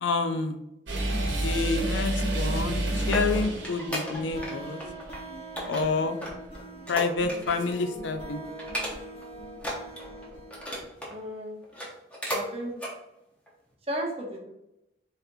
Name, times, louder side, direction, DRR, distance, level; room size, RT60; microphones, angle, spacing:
voice 1, 0.0-0.6 1.4-4.8 5.6-6.2 6.9-8.4, left 3 dB, 70° left, 8 dB, 0.4 m, -28 dB
sound 1, 0.9-4.7, right 1 dB, 80° right, 1.1 m, -29 dB
sound 2, 3.0-4.5 4.8-5.2 5.6-7.7 8.0-8.2 8.6-9.2 9.6-11.2 11.6-12.5 12.8-12.9 13.5-13.6, equal, 5° left, 0.8 m, -35 dB
sound 3, 3.4-10.9, right 1 dB, 30° left, 1.1 m, -42 dB
voice 2, 11.1-11.6 12.3-12.7 13.9-14.5, right 1 dB, 30° right, -1 dB, 0.8 m, -34 dB
4.2 x 3.9 x 2.6 m, 0.86 s
head